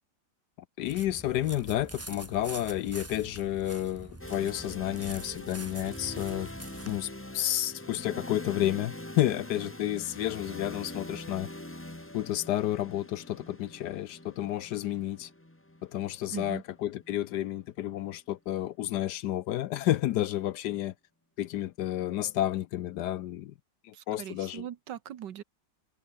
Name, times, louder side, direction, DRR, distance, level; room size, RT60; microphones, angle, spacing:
voice 1, 0.8-6.5 6.9-11.5 12.1-15.3 15.8-20.9 21.4-23.5 23.8-24.7, left 13 dB, 70° left, 1.1 m, -31 dB
sound 1, 0.8-7.0, right 2 dB, 10° right, 0.8 m, -45 dB
sound 2, 4.2-18.1, left 1 dB, 10° left, 1.3 m, -44 dB
voice 2, 16.3-16.6 23.9-25.4, right 10 dB, 70° right, 1.7 m, -40 dB
omnidirectional pair, 2.0 m